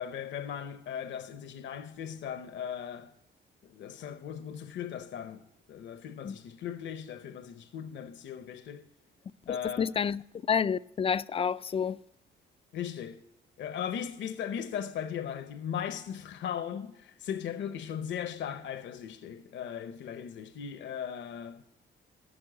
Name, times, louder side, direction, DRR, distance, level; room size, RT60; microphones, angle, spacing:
voice 1, 0.0-3.1 3.6-5.4 5.7-8.9 9.5-9.9 12.7-13.2 13.6-21.6, left 8 dB, 65° left, 0.7 m, -38 dB
voice 2, 9.5-10.2 10.5-12.0, left 7 dB, 30° left, 0.3 m, -29 dB
14.0 x 6.2 x 6.1 m
cardioid pair, 90°, 20 cm